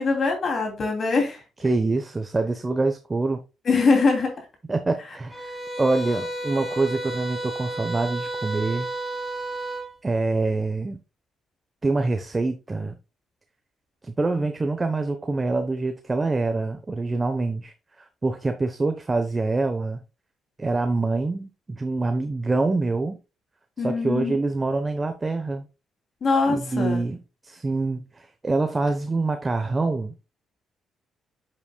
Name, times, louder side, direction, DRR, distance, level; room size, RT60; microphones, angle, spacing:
voice 1, 0.0-1.4 3.6-4.3 23.8-24.3 26.2-27.0, left 4 dB, 50° left, 2.8 m, -22 dB
voice 2, 1.6-3.4 4.7-8.9 10.0-11.0 11.8-12.9 14.0-17.7 18.2-20.0 20.6-23.2 23.8-25.7 26.5-30.1, right 3 dB, 25° right, 0.9 m, -25 dB
sound 1, 5.3-9.9, right 1 dB, 10° left, 3.2 m, -32 dB
7.9 x 7.5 x 2.3 m
cardioid pair, 90°, 0 cm